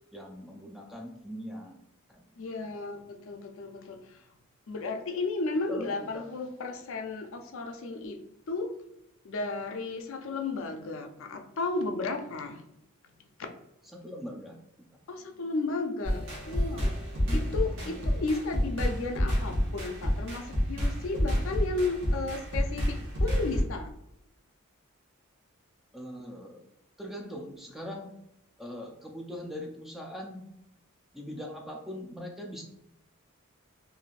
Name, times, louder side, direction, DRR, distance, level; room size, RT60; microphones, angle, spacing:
voice 1, 0.1-1.8 2.1-2.3 5.7-5.8 6.1-6.2 13.9-14.6 17.3-17.4 17.8-18.0 25.9-26.6 27.0-28.1 28.6-30.5 31.1-32.6, left 1 dB, ahead, 0 dB, 0.3 m, -41 dB
voice 2, 2.4-4.2 4.7-8.2 8.5-8.7 9.2-12.6 13.0-13.1 13.4-13.5 15.1-16.9 17.3-23.9, left 3 dB, 65° left, 4 dB, 0.4 m, -34 dB
sound 1, 16.0-23.6, equal, 60° right, 1.1 m, -29 dB
3.2 x 2.6 x 2.4 m, 0.79 s
head